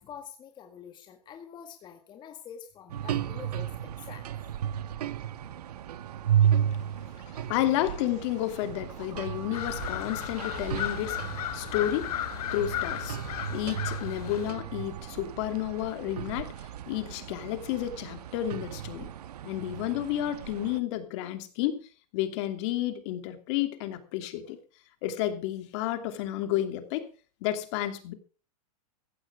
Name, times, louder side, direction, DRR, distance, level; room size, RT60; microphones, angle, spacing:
voice 1, 0.0-4.3 7.0-7.8, left 8 dB, 25° left, 1.8 m, -47 dB
sound 1, 2.9-20.8, right 9 dB, 80° right, 1.3 m, -34 dB
voice 2, 7.4-12.1 12.5-13.2 13.5-16.5 16.9-19.1 19.4-21.8 22.1-24.6 25.0-27.1 27.4-28.1, left 13 dB, 50° left, 2.8 m, -31 dB
sound 2, 9.5-14.5, left 12 dB, 75° left, 2.2 m, -35 dB
15.5 x 15.0 x 3.6 m
supercardioid pair, 145°, 20 cm